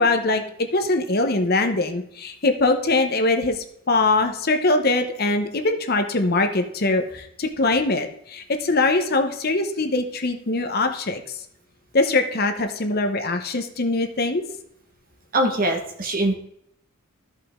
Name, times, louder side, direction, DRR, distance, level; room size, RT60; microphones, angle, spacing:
voice 1, 0.0-11.4 11.9-14.4, left 2 dB, 45° left, 6 dB, 0.9 m, -22 dB
voice 2, 15.3-16.3, right 1 dB, 40° right, 2 dB, 1.5 m, -22 dB
13.0 x 5.5 x 3.6 m, 0.74 s
head